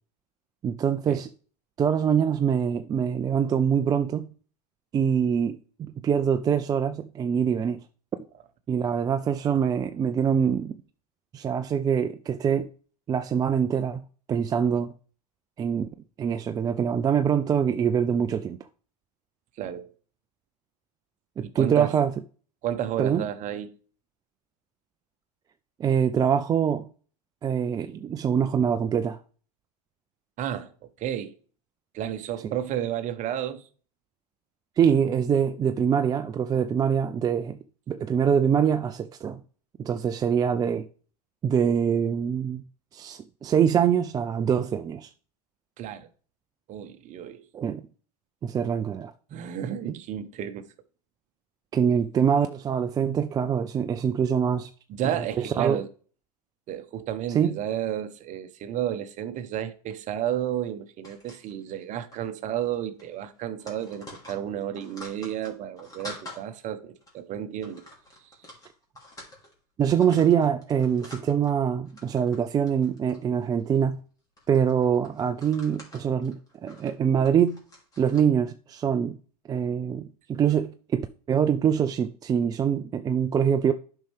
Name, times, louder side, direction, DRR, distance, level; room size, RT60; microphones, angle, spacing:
voice 1, 0.6-1.3 1.8-4.3 4.9-7.8 8.7-10.8 11.3-12.7 13.1-14.9 15.6-15.9 16.2-18.6 21.4-22.1 23.0-23.2 25.8-26.9 27.4-29.2 34.8-37.6 37.9-39.4 39.8-40.9 41.4-42.6 42.9-45.1 47.5-47.8 48.4-49.1 51.7-54.7 55.4-55.8 57.3-57.5 69.8-74.0 74.5-77.6 78.0-79.2 79.5-83.7, right 7 dB, 20° right, 0.3 m, -24 dB
voice 2, 19.6-19.9 21.4-21.9 22.6-23.7 30.4-30.7 31.0-31.3 31.9-33.6 45.8-46.1 46.7-47.4 49.3-50.7 54.9-55.9 56.7-67.8 68.2-68.3, right 10 dB, 35° right, 1.0 m, -32 dB
sound 1, 61.0-61.8 62.1-62.3 62.6-62.7 63.0-66.4 67.0-67.2 67.6-69.5 69.8-71.5 71.9-72.4 72.7-73.8 74.4-78.2, left 1 dB, 20° left, 2.8 m, -47 dB
9.2 x 5.5 x 3.4 m
hypercardioid pair, 110°, 20 cm